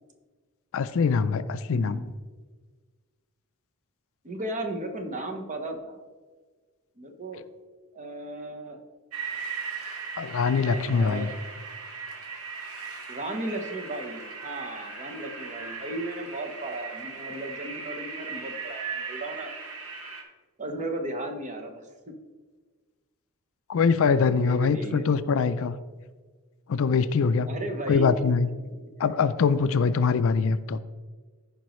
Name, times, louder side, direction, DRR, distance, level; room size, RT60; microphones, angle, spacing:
voice 1, 0.7-2.0 10.2-11.3 23.7-25.8 26.7-27.5 27.9-28.5 29.0-30.8, left 5 dB, 65° left, 13 dB, 0.4 m, -23 dB
voice 2, 1.7-2.0 4.2-6.0 7.0-7.4 7.9-8.8 10.6-11.3 13.1-19.5 20.6-21.9 24.3-25.1 27.5-28.2 28.7-28.8 30.1-30.2, right 1 dB, 35° right, 5 dB, 1.0 m, -35 dB
sound 1, 9.1-20.2, right 5 dB, 75° right, 1.3 m, -38 dB
14.5 x 5.2 x 3.1 m, 1.4 s
head